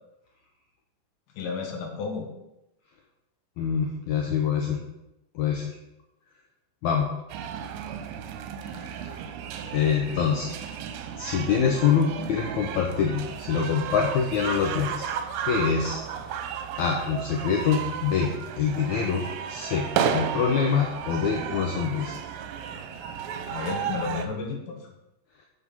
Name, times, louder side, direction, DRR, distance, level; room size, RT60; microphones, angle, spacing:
voice 1, 1.4-2.3 23.5-24.8, left 5 dB, 70° left, 2 dB, 2.9 m, -32 dB
voice 2, 3.6-4.8 5.3-5.7 6.8-7.1 8.6-9.2 9.7-10.5 11.2-15.1 15.4-16.0 16.8-22.2, left 6 dB, 90° left, 0 dB, 1.6 m, -25 dB
sound 1, 7.3-24.3, right 8 dB, 85° right, 2.7 m, -33 dB
7.6 x 6.1 x 5.5 m, 0.90 s
omnidirectional pair, 4.5 m